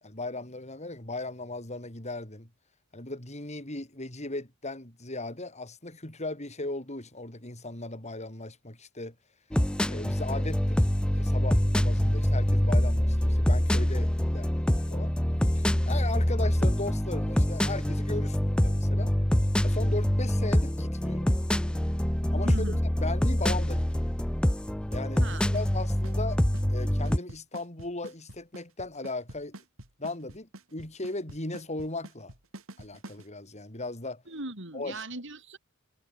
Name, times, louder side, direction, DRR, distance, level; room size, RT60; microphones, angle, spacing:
voice 1, 0.0-2.5 2.9-9.1 9.9-10.9 11.1-15.1 15.5-19.1 19.6-21.3 22.3-22.5 23.0-24.1 24.9-26.4 26.7-29.6 30.0-32.3 32.8-34.2 34.7-35.0, left 2 dB, 35° left, 5.0 m, -37 dB
sound 1, 9.5-27.2, equal, 5° left, 0.4 m, -25 dB
voice 2, 22.4-22.8 25.2-25.4 34.3-35.6, right 2 dB, 65° right, 6.5 m, -38 dB
Drum kit / Snare drum / Bass drum, 25.3-33.3, right 1 dB, 85° right, 4.4 m, -45 dB
head